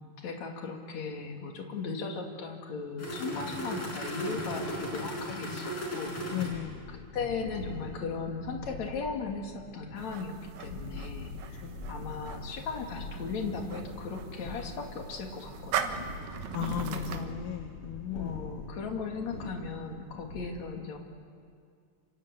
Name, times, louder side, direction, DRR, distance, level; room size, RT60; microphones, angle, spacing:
voice 1, 0.2-6.5 6.9-11.6 11.9-16.1 16.9-17.4 18.1-21.0, left 4 dB, 55° left, 2 dB, 3.5 m, -37 dB
sound 1, 3.0-20.5, left 1 dB, 40° left, 6.4 m, -40 dB
voice 2, 6.3-6.8 11.6-11.8 16.5-18.5, left 12 dB, 75° left, 6 dB, 2.6 m, -36 dB
sound 2, 10.0-17.3, right 8 dB, 80° right, 2.9 m, -40 dB
26.5 x 26.0 x 8.2 m, 2.3 s
omnidirectional pair, 4.0 m